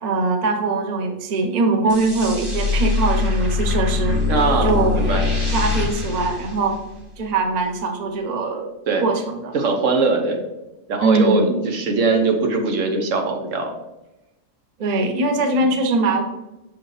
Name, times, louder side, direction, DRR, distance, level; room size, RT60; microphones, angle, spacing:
voice 1, 0.0-4.2 4.6-5.0 5.5-6.8 7.2-8.7 9.0-9.5 11.0-11.6 14.8-16.2, right 3 dB, 40° right, 4 dB, 0.7 m, -21 dB
sound 1, 1.9-7.2, left 4 dB, 25° right, 1.2 m, -23 dB
voice 2, 4.3-5.3 8.9-9.1 9.5-10.4 10.9-13.7 15.6-15.7, right 3 dB, 75° right, 3 dB, 1.2 m, -21 dB
6.3 x 4.9 x 3.2 m, 0.98 s
omnidirectional pair, 1.3 m